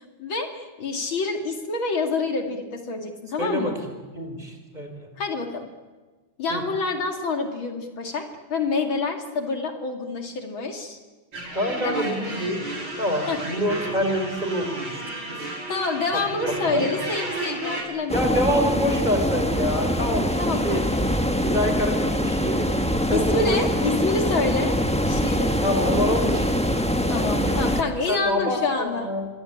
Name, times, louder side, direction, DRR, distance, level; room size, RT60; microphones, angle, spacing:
voice 1, 0.0-3.8 5.2-5.7 6.4-8.2 8.5-11.0 11.8-12.1 13.3-13.4 15.7-18.4 20.4-21.1 23.1-24.7 25.1-25.5 27.1-29.1, left 4 dB, 65° left, 4 dB, 3.2 m, -27 dB
voice 2, 3.4-3.7 4.1-5.1 6.5-6.6 11.5-12.6 13.0-15.0 15.3-15.4 16.1-16.2 16.5-16.8 18.1-20.9 21.4-22.7 23.1-23.6 25.6-27.7 28.1-29.3, equal, 20° right, 5 dB, 5.0 m, -26 dB
sound 1, 11.3-17.8, right 2 dB, 75° right, 6.5 m, -32 dB
sound 2, 18.1-27.8, equal, 5° left, 1.1 m, -24 dB
26.5 x 24.5 x 8.8 m, 1.3 s
omnidirectional pair, 2.3 m